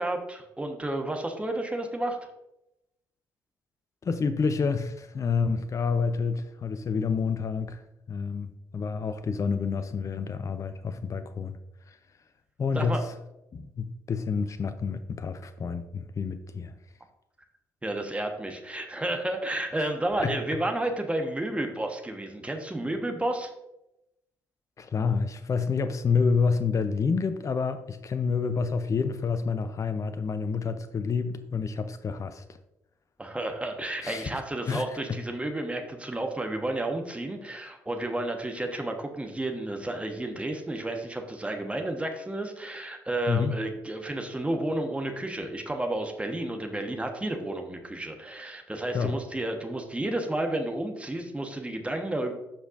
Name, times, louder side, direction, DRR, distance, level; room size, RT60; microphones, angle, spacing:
voice 1, 0.0-2.2 12.7-13.0 17.8-23.5 33.2-52.3, right 1 dB, 10° right, 1.3 m, -31 dB
voice 2, 4.0-7.8 8.1-11.6 11.9-12.0 12.6-13.1 13.5-16.7 19.8-19.9 20.2-20.4 24.8-32.6 34.0-34.3 34.7-35.2 43.3-43.6 48.9-49.2, left 5 dB, 35° left, 0.6 m, -28 dB
14.5 x 5.0 x 2.6 m
figure-of-eight pair, 45°, 10 cm